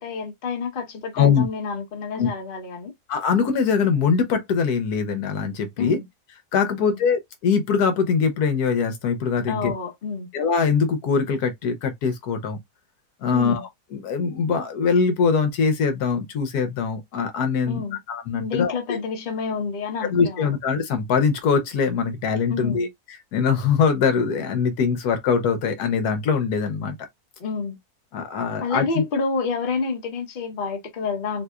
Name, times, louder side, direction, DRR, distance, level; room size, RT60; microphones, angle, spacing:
voice 1, 0.0-2.9 5.8-6.1 6.8-7.0 9.5-10.3 13.3-13.6 17.7-18.0 18.4-20.5 22.5-22.9 27.4-27.8 28.6-31.4, left 4 dB, 40° left, 1.0 m, -29 dB
voice 2, 1.1-1.4 2.2-2.3 3.1-6.0 6.5-9.7 10.3-12.6 13.2-17.8 18.1-19.0 20.0-22.9 23.3-27.0 28.1-29.0, left 6 dB, 75° left, 1.2 m, -22 dB
4.0 x 2.7 x 2.2 m
omnidirectional pair, 1.7 m